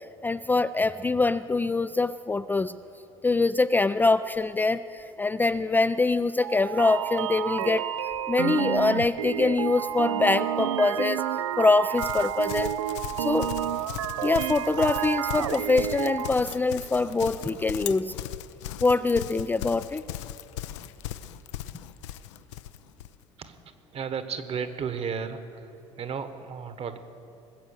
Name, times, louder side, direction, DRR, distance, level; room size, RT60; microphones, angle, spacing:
voice 1, 0.2-2.8 3.2-7.9 8.3-11.2 11.6-12.7 13.2-13.5 14.2-18.1 18.8-20.0, left 3 dB, 10° left, 11 dB, 0.4 m, -24 dB
sound 1, 6.4-16.3, right 11 dB, 85° right, 0.5 m, -30 dB
Livestock farm animals working animals, 12.0-23.2, left 12 dB, 75° left, 0.6 m, -38 dB
voice 2, 23.4-27.0, right 6 dB, 40° right, 10 dB, 1.4 m, -34 dB
20.5 x 8.1 x 6.7 m, 2.9 s
hypercardioid pair, 70°, 15 cm